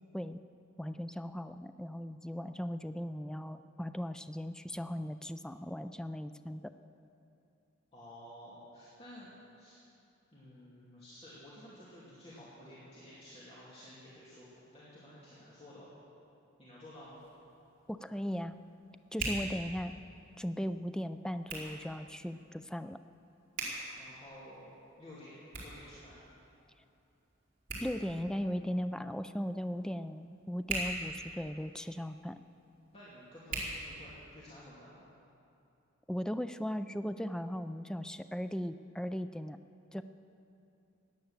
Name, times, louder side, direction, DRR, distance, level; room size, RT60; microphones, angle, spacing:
voice 1, 0.8-6.7 17.9-18.5 19.1-19.9 20.4-23.0 27.8-32.4 36.1-39.6 39.9-40.0, equal, 5° left, 10 dB, 0.3 m, -37 dB
voice 2, 7.9-9.3 9.6-9.8 10.3-15.9 16.6-17.2 24.0-26.2 32.9-35.1, left 1 dB, 30° left, -9 dB, 2.7 m, -52 dB
Hands, 16.9-34.6, right 2 dB, 45° right, 3.9 m, -45 dB
17.0 x 10.5 x 7.3 m, 2.7 s
head